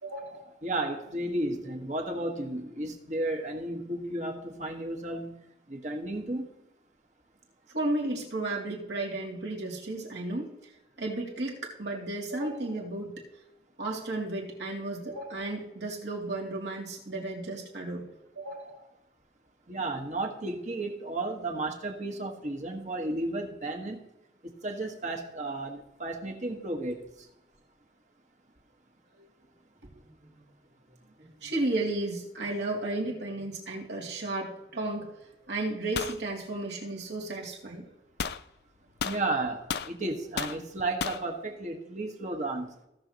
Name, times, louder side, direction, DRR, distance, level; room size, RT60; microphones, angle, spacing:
voice 1, 0.0-0.6 7.7-10.7 11.0-13.2 13.8-18.9 29.2-29.3 31.2-35.1 35.5-37.9, right 2 dB, 70° right, -2 dB, 2.6 m, -34 dB
voice 2, 0.6-6.5 19.7-24.0 24.4-27.3 39.0-42.7, right 2 dB, 40° right, 2 dB, 1.4 m, -33 dB
sound 1, 35.9-36.2 38.2-38.4 39.0-39.9 40.4-40.6 41.0-41.2, left 7 dB, 60° left, 0.4 m, -33 dB
17.0 x 6.6 x 2.9 m, 0.89 s
head